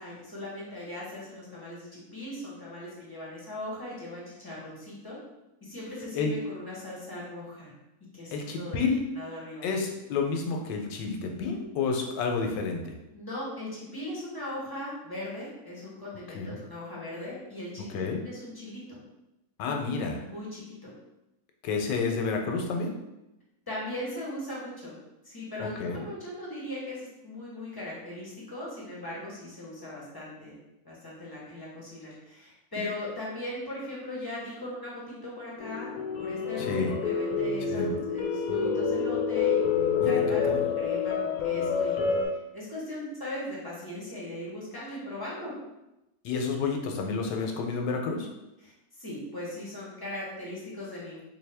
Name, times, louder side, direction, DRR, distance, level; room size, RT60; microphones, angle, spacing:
voice 1, 0.0-5.2 5.6-7.7 8.1-8.8 9.1-9.7 13.1-17.9 18.2-19.0 20.2-20.9 23.7-25.0 25.2-30.6 30.8-35.9 36.2-42.3 42.5-45.5 48.6-51.2, left 1 dB, 20° left, -6 dB, 0.8 m, -39 dB
voice 2, 8.3-9.0 9.6-13.0 16.3-16.6 17.9-18.2 19.6-20.2 21.6-22.9 25.6-26.0 36.6-36.9 37.7-38.0 40.0-40.7 46.2-48.3, left 4 dB, 85° left, 2 dB, 1.3 m, -30 dB
sound 1, 35.6-42.2, left 6 dB, 70° left, 1.0 m, -27 dB
3.7 x 2.7 x 3.3 m, 0.93 s
omnidirectional pair, 1.9 m